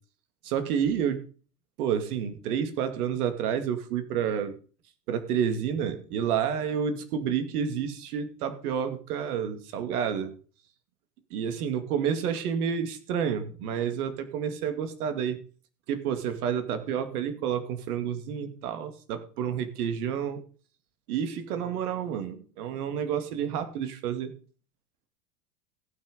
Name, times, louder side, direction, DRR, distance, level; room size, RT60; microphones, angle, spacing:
voice 1, 0.4-1.3 1.8-4.6 5.1-10.3 11.3-15.4 15.9-20.4 21.1-24.3, right 8 dB, 70° right, 9 dB, 2.4 m, -29 dB
15.5 x 6.1 x 5.2 m, 0.37 s
hypercardioid pair, 105°, 47 cm